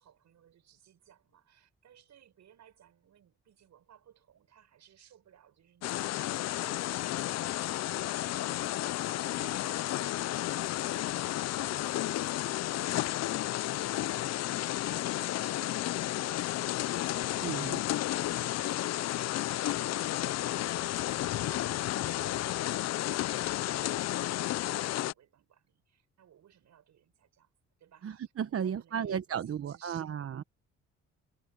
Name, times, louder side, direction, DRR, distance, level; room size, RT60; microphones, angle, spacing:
voice 1, 0.0-14.6 14.8-15.8 16.0-18.9 19.4-27.5 27.8-28.2 28.5-30.2, right 10 dB, 65° right, 6.9 m, -60 dB
sound 1, 5.8-25.1, left 15 dB, 60° left, 0.5 m, -32 dB
voice 2, 17.4-17.8 28.0-30.4, right 8 dB, 50° right, 1.1 m, -34 dB
cardioid pair, 90°, 30 cm